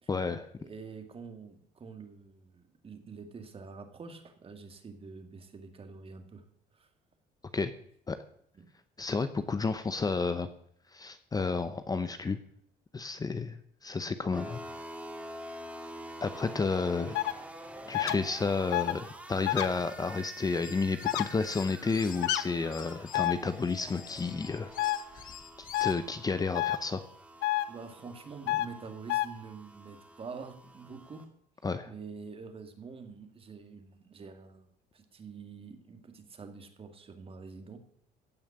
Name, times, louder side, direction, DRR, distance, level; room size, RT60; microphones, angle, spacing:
voice 1, 0.1-0.5 7.5-7.7 8.1-8.2 9.0-10.5 10.9-12.4 12.9-14.6 16.2-17.2 17.9-24.7 25.8-27.0 31.6-31.9, left 4 dB, 20° left, 11 dB, 0.8 m, -31 dB
voice 2, 0.6-6.4 6.7-6.9 8.6-8.7 9.3-9.5 16.3-16.4 27.7-31.3 31.9-34.7 34.9-37.8, right 5 dB, 35° right, 6 dB, 2.3 m, -46 dB
sound 1, 14.3-31.2, right 1 dB, 10° right, 2.7 m, -47 dB
sound 2, 17.1-17.3 17.9-18.1 18.7-18.9 19.5-19.7 21.1-21.2 22.2-22.4 23.1-23.3 24.8-25.0 25.7-25.9 26.5-26.8 27.4-27.6 28.5-28.7 29.1-29.3, left 16 dB, 90° left, 0.8 m, -28 dB
sound 3, 20.5-22.3 22.7-26.0, left 8 dB, 55° left, 1.5 m, -48 dB
16.0 x 5.8 x 8.7 m, 0.66 s
cardioid pair, 110°, 17 cm